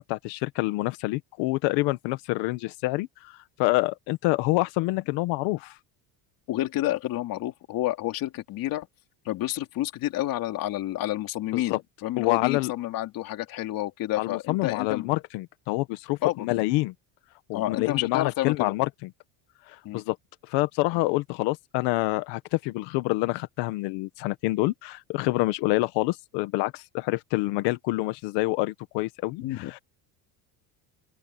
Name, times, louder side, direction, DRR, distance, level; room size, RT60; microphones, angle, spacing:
voice 1, 0.0-5.7 11.5-11.8 12.2-12.7 14.2-16.9 17.5-18.9 19.7-20.2 20.5-29.8, left 21 dB, 80° left, 1.7 m, -27 dB
voice 2, 6.5-8.9 9.3-15.1 16.2-16.5 17.5-18.7 19.8-20.0 29.4-29.7, left 15 dB, 55° left, 3.4 m, -29 dB
open air
cardioid pair, 150°, 41 cm